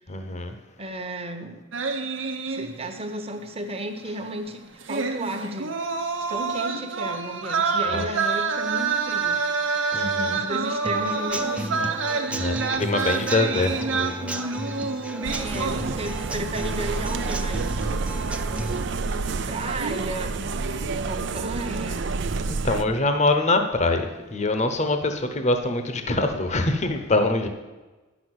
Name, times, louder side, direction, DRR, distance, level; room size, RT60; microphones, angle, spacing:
voice 1, 0.1-0.5 7.9-8.0 9.9-10.3 12.3-14.4 22.5-27.5, left 2 dB, 35° left, 7 dB, 0.9 m, -24 dB
voice 2, 0.8-1.6 2.5-5.8 6.3-9.4 9.9-12.0 15.2-17.8 19.5-20.6 21.1-22.1, right 1 dB, 30° right, 6 dB, 1.1 m, -33 dB
sound 1, 1.7-3.1 3.4-3.5 4.8-16.3 16.6-16.9, right 4 dB, 85° right, 1.0 m, -27 dB
Human voice / Acoustic guitar / Drum, 10.8-18.8, right 1 dB, 5° right, 0.6 m, -35 dB
sound 2, 15.2-22.8, right 4 dB, 65° right, 0.5 m, -29 dB
10.0 x 6.1 x 7.9 m, 1.2 s
head